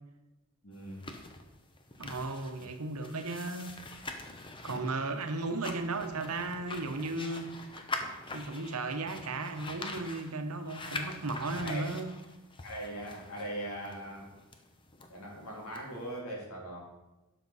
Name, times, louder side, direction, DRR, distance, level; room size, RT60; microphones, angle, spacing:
voice 1, 0.6-1.0 4.6-4.7 11.5-11.9 12.6-14.3 15.1-16.8, right 1 dB, 75° left, -3 dB, 3.1 m, -40 dB
sound 1, 0.7-16.2, left 3 dB, 20° left, 0.7 m, -44 dB
voice 2, 2.0-3.8 4.6-7.5 8.3-12.1, right 3 dB, 85° right, 7 dB, 1.0 m, -35 dB
12.0 x 5.9 x 4.1 m, 1.0 s
head